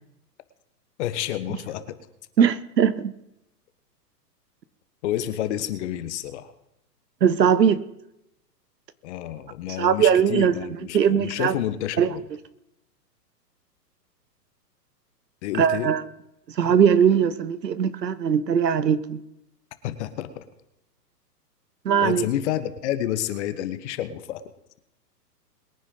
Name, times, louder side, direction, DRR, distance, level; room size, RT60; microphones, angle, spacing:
voice 1, 1.0-2.0 5.0-6.5 9.0-12.3 15.4-15.9 19.8-20.5 22.0-24.4, left 12 dB, 45° left, 1.3 m, -29 dB
voice 2, 2.4-3.1 7.2-7.8 9.8-10.5 10.9-11.5 12.0-12.1 15.5-16.0 16.6-19.2 21.8-22.2, right 8 dB, 80° right, 1.2 m, -20 dB
21.5 x 9.9 x 3.9 m
hypercardioid pair, 125°, 49 cm